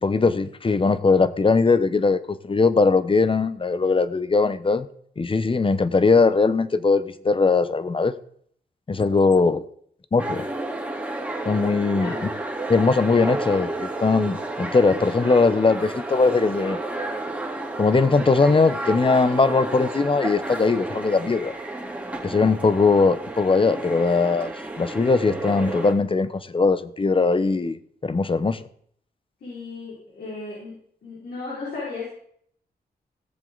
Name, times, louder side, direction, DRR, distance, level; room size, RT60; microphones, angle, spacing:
voice 1, 0.0-4.9 5.2-8.1 8.9-9.7 10.1-10.4 11.4-12.1 12.7-16.8 17.8-21.5 22.2-24.5 24.8-28.6, left 4 dB, 30° left, 14 dB, 0.9 m, -20 dB
sound 1, 10.2-25.9, right 2 dB, 10° right, 3.1 m, -31 dB
voice 2, 29.4-30.7 31.0-32.1, left 3 dB, 80° left, -7 dB, 5.3 m, -35 dB
17.0 x 7.4 x 4.0 m, 0.64 s
cardioid pair, 70°, 17 cm